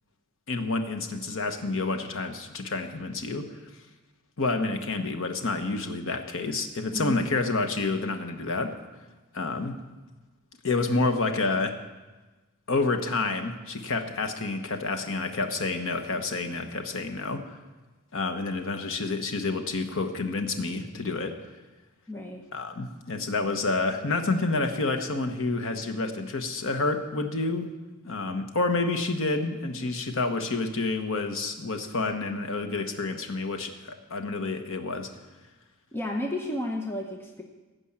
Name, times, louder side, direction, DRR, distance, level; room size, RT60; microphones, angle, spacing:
voice 1, 0.5-3.5 4.4-8.7 9.3-9.8 10.6-11.7 12.7-17.5 18.1-21.4 22.5-27.7 28.0-35.1, left 3 dB, 65° left, 6 dB, 1.2 m, -29 dB
voice 2, 6.9-7.3 22.1-22.4 35.9-37.4, left 1 dB, 10° left, 1 dB, 0.9 m, -32 dB
15.5 x 5.4 x 8.7 m, 1.2 s
head